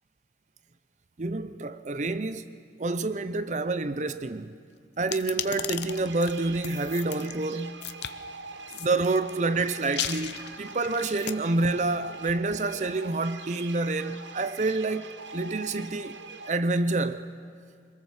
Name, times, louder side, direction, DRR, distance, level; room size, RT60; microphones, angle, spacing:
voice 1, 1.2-2.5 2.8-4.5 5.0-7.8 8.8-16.2 16.5-17.3, right 3 dB, 40° right, 0.6 m, -28 dB
sound 1, 5.0-7.3 7.8-8.1 8.7-9.3 9.8-11.3, left 11 dB, 70° left, 0.7 m, -35 dB
sound 2, 5.9-16.6, right 4 dB, 80° right, 0.9 m, -43 dB
24.5 x 22.5 x 7.3 m
head